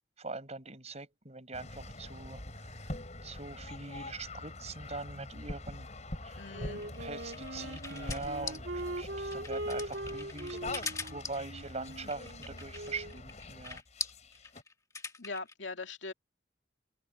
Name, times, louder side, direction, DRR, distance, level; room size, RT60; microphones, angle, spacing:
voice 1, 0.2-5.9 6.2-6.6 7.0-13.8, right 3 dB, 35° right, 6.3 m, -43 dB
sound 1, 1.5-14.6, left 2 dB, 40° left, 5.6 m, -44 dB
voice 2, 6.4-6.8 15.2-16.1, left 3 dB, 80° left, 2.4 m, -41 dB
Wind instrument woodwind instrument, 6.5-13.2, right 1 dB, 65° right, 3.5 m, -41 dB
sound 2, 6.8-15.5, left 4 dB, 20° left, 1.4 m, -42 dB
head